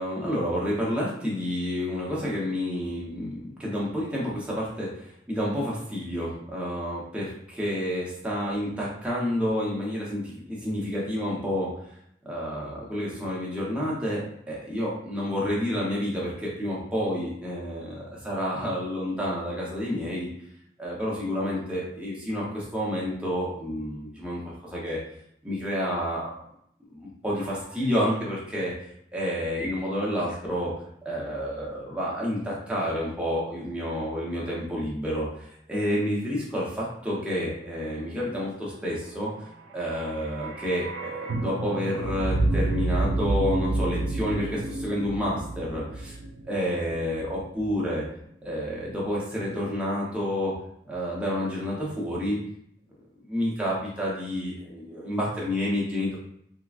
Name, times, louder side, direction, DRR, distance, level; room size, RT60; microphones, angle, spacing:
voice 1, 0.0-11.7 12.3-20.3 20.8-25.0 25.4-26.3 26.9-30.7 31.0-35.3 35.7-39.3 39.7-46.2 46.5-48.0 48.4-50.5 50.9-52.4 53.2-56.2, equal, 5° right, -6 dB, 0.7 m, -29 dB
sound 1, 39.6-47.7 48.0-48.1, right 2 dB, 70° right, 0.4 m, -29 dB
3.6 x 2.2 x 2.4 m, 0.71 s
head